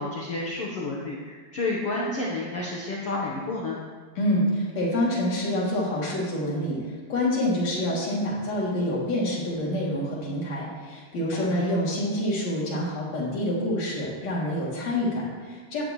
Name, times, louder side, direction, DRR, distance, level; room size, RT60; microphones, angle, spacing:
voice 1, 0.0-3.8 11.3-11.7, left 2 dB, 80° left, -3 dB, 1.3 m, -30 dB
voice 2, 4.2-15.8, left 1 dB, 45° left, -5 dB, 3.8 m, -27 dB
16.0 x 12.0 x 3.2 m, 1.5 s
omnidirectional pair, 4.7 m